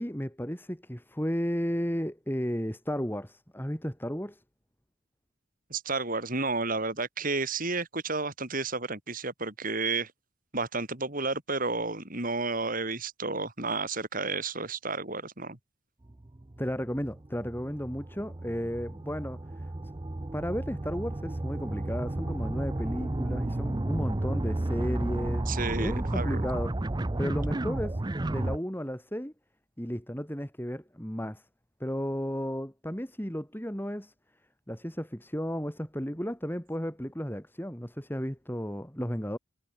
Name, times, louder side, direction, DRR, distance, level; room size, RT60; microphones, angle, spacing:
voice 1, 0.0-4.4 16.6-19.4 20.3-26.7 27.2-28.0 28.3-29.3 29.8-31.4 31.8-34.1 34.7-39.4, equal, 10° left, 3.8 m, -34 dB
voice 2, 5.7-10.1 10.5-15.6 25.5-26.4, right 3 dB, 40° right, 3.9 m, -31 dB
sound 1, 16.1-28.6, right 1 dB, 20° right, 0.5 m, -32 dB
head